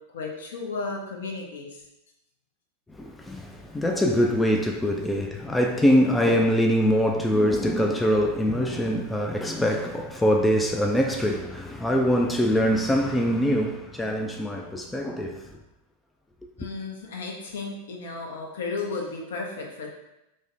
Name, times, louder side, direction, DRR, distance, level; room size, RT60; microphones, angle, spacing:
voice 1, 0.1-1.8 16.6-19.9, left 3 dB, 60° left, 0.7 m, -34 dB
voice 2, 2.9-15.5, equal, 10° left, 0.3 m, -23 dB
4.8 x 2.1 x 2.6 m
figure-of-eight pair, 90°, 0 cm